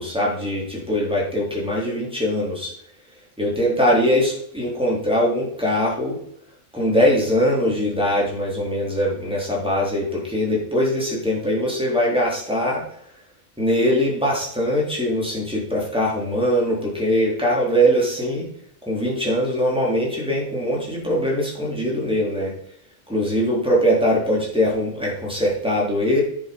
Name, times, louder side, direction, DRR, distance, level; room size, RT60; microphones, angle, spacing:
voice 1, 0.0-2.7 3.4-6.2 6.7-12.8 13.6-18.5 18.9-22.5 23.1-26.2, equal, 5° right, -6 dB, 3.8 m, -21 dB
10.0 x 7.4 x 5.4 m, 0.68 s
omnidirectional pair, 1.3 m